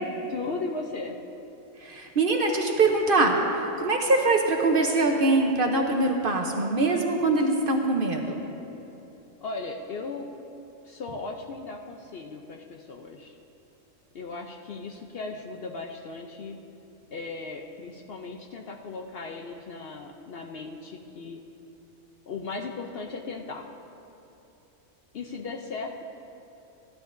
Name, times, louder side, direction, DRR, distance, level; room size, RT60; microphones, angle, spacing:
voice 1, 0.3-1.2 9.4-10.3 10.8-13.4 14.1-16.6 17.1-21.4 22.3-23.7 25.1-26.0, left 3 dB, 60° left, 2 dB, 0.7 m, -37 dB
voice 2, 1.8-8.4, right 2 dB, 50° right, 2 dB, 0.9 m, -23 dB
14.5 x 11.5 x 2.6 m, 2.9 s
omnidirectional pair, 1.4 m